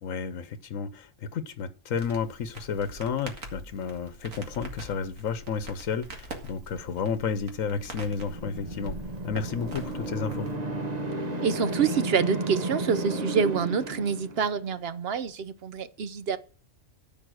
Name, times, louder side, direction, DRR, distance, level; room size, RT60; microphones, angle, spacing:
voice 1, 0.0-9.0 9.2-10.5, left 6 dB, 80° left, 1.3 m, -32 dB
Crackle, 1.9-10.6, right 1 dB, 85° right, 2.3 m, -44 dB
sound 1, 7.8-14.7, right 2 dB, 30° right, 1.5 m, -33 dB
voice 2, 11.4-16.4, right 6 dB, 55° right, 0.9 m, -27 dB
14.0 x 5.5 x 6.3 m
omnidirectional pair, 1.4 m